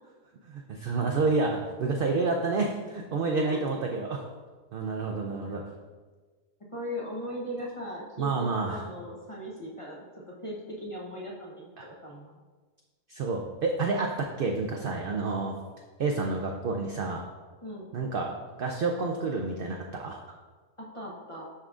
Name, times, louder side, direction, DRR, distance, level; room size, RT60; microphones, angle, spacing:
voice 1, 0.5-1.5 1.8-4.2 4.7-5.6 8.2-8.8 11.8-11.9 13.1-15.5 16.0-17.2 17.9-18.3 18.6-20.2, right 3 dB, 75° right, 1 dB, 0.5 m, -29 dB
voice 2, 6.7-12.4 17.6-17.9 20.9-21.4, equal, 30° left, -4 dB, 0.7 m, -39 dB
11.0 x 3.7 x 2.4 m, 1.4 s
omnidirectional pair, 1.5 m